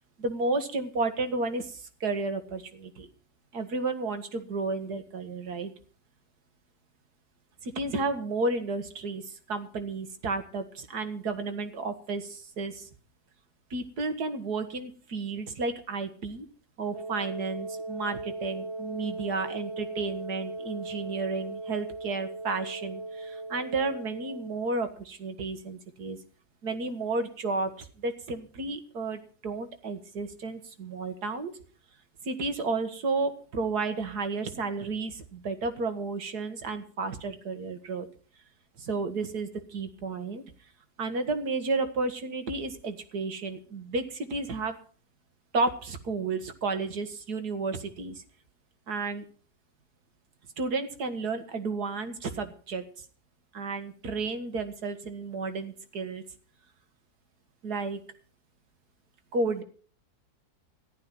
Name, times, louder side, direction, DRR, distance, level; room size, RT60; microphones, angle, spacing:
voice 1, 0.2-3.1 3.5-5.7 7.6-12.9 13.7-16.5 16.8-26.2 26.6-31.5 32.2-38.1 38.8-40.4 41.0-44.8 45.5-48.2 48.9-49.3 50.6-52.9 53.5-56.2 57.6-58.0 59.3-59.6, right 3 dB, 75° right, 8 dB, 2.2 m, -32 dB
Wind instrument woodwind instrument, 16.9-24.8, right 2 dB, 45° right, 1.5 m, -38 dB
14.5 x 11.5 x 6.0 m, 0.43 s
omnidirectional pair, 1.7 m